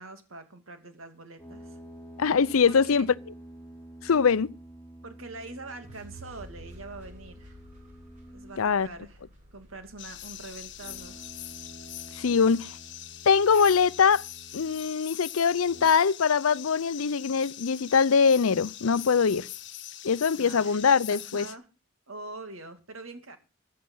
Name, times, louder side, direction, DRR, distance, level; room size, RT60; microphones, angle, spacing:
voice 1, 0.0-1.8 2.7-2.9 5.0-7.6 8.3-9.2 9.5-11.2 20.4-21.7 22.1-23.4, right 2 dB, 75° right, 2.6 m, -44 dB
sound 1, 1.4-8.7 10.7-14.9 15.5-15.9, right 1 dB, 10° left, 3.9 m, -49 dB
voice 2, 2.2-3.1 4.0-4.5 8.6-8.9 12.2-12.7 13.3-14.2 14.5-19.5 20.0-21.4, left 6 dB, 85° left, 0.6 m, -22 dB
sound 2, 5.8-12.0, equal, 40° right, 7.6 m, -52 dB
sound 3, 10.0-21.5, left 13 dB, 60° left, 1.1 m, -43 dB
15.0 x 9.4 x 5.6 m
head